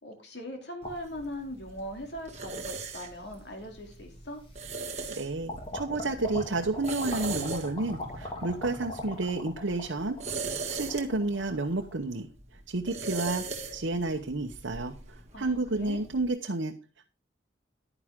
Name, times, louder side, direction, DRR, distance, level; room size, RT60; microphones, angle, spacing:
voice 1, 0.0-4.4 15.3-16.1, equal, 60° left, 2 dB, 2.8 m, -40 dB
sound 1, 0.8-2.0 2.8-2.9 4.0-4.1 4.6-5.1 5.5-11.9, left 1 dB, 30° left, 2.7 m, -40 dB
sound 2, 0.8-16.3, right 4 dB, 35° right, 1.7 m, -41 dB
voice 2, 5.1-12.3 12.7-13.5 13.7-14.9 15.4-16.7, right 2 dB, 80° right, 3 dB, 1.0 m, -31 dB
11.0 x 9.9 x 3.7 m, 0.30 s
head